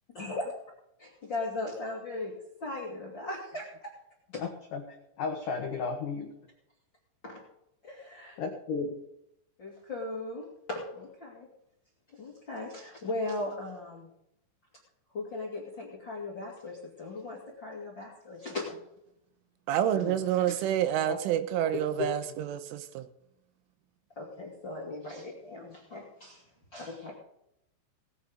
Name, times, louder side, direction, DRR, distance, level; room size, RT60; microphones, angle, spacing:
voice 1, 0.1-0.5 1.0-2.3 2.6-3.9 4.3-4.4 7.2-7.4 7.8-8.4 9.6-11.5 12.1-14.1 15.1-18.8 20.5-20.6 24.1-26.4 26.7-27.1, left 2 dB, 45° left, 1.4 m, -38 dB
voice 2, 4.4-6.3 8.4-9.0 19.9-20.2 21.1-21.2 21.7-22.1, left 5 dB, 85° left, 1.8 m, -34 dB
voice 3, 19.7-23.1, right 10 dB, 80° right, 3.2 m, -28 dB
18.5 x 9.1 x 5.1 m
omnidirectional pair, 6.0 m